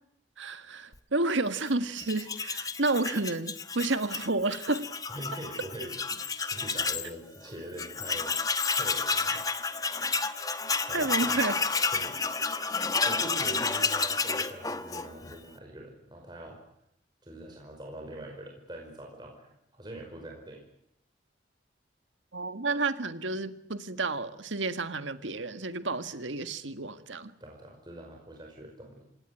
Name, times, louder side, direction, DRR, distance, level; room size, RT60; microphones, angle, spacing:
voice 1, 0.4-4.9 9.3-9.4 10.9-11.5 22.3-27.3, right 3 dB, 85° right, 10 dB, 1.7 m, -30 dB
Tools, 2.0-7.1 7.5-7.6 7.8-15.4, left 4 dB, 20° left, 1.1 m, -31 dB
voice 2, 5.1-8.4 8.7-9.5 10.8-11.4 11.9-12.2 13.0-16.6 17.2-20.6 27.4-29.0, right 1 dB, 25° right, 0 dB, 5.2 m, -43 dB
27.0 x 18.0 x 9.9 m, 0.77 s
head